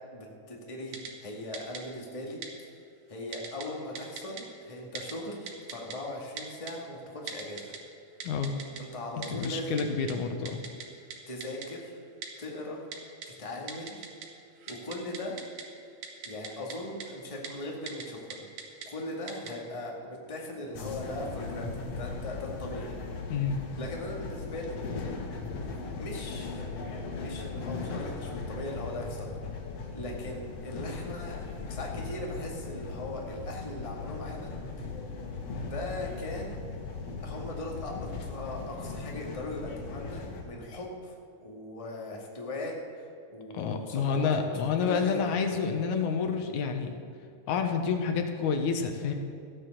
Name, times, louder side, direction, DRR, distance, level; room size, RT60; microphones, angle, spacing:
voice 1, 0.1-2.7 3.1-7.7 8.8-9.8 11.3-11.9 12.4-12.9 13.3-14.0 14.7-15.4 16.2-18.5 18.8-23.0 23.7-24.8 25.9-26.7 27.1-29.3 29.9-31.4 31.7-34.5 35.6-36.7 37.2-44.3 44.8-45.3, left 1 dB, 15° left, -1 dB, 1.4 m, -39 dB
Typing, 0.9-1.1 1.5-1.8 2.4-2.5 3.3-3.7 4.0-4.4 5.0-5.1 5.5-6.0 6.4-6.7 7.3-7.8 8.2-8.8 9.2-9.5 9.8-9.9 10.1-10.2 10.5-10.9 11.1-11.2 11.4-11.7 12.2-12.3 12.9-13.3 13.7-14.3 14.6-15.6 16.0-16.8 17.0-17.1 17.4-17.5 17.9-18.0 18.3-18.9 19.3-19.5, right 6 dB, 70° right, 2.7 m, -40 dB
voice 2, 9.3-10.6 23.3-23.6 43.5-46.9 47.5-49.1, left 6 dB, 80° left, 5 dB, 2.4 m, -29 dB
sound 1, 20.7-40.4, left 4 dB, 60° left, 2.3 m, -38 dB
14.5 x 9.3 x 6.5 m, 2.6 s
omnidirectional pair, 3.5 m